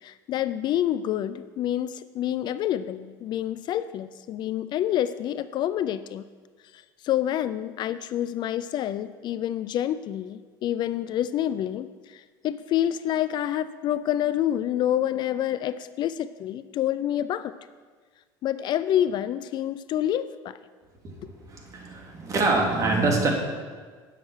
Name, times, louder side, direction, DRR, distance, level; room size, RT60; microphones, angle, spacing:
voice 1, 0.0-6.2 6.7-17.5 18.4-20.6, left 11 dB, 50° left, 14 dB, 0.4 m, -28 dB
voice 2, 21.5-23.3, right 3 dB, 35° right, 0 dB, 2.6 m, -24 dB
9.0 x 7.4 x 6.3 m, 1.5 s
supercardioid pair, 110°, 10 cm